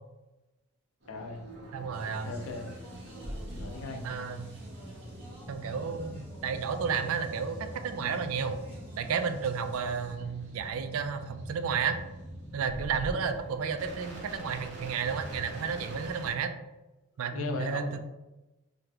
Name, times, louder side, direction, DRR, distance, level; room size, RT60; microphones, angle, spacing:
sound 1, 1.0-16.3, equal, 55° right, 0.9 m, -44 dB
voice 1, 1.1-1.4 2.2-2.7 3.5-4.1 17.3-18.0, left 3 dB, 75° left, 4 dB, 0.5 m, -37 dB
voice 2, 1.7-2.3 4.0-4.5 5.5-8.6 9.0-12.0 12.5-16.5 17.2-17.9, right 6 dB, 80° right, 8 dB, 0.4 m, -32 dB
Speech, 1.9-10.1, equal, 10° right, 1.2 m, -52 dB
4.0 x 2.1 x 2.8 m, 1.0 s
head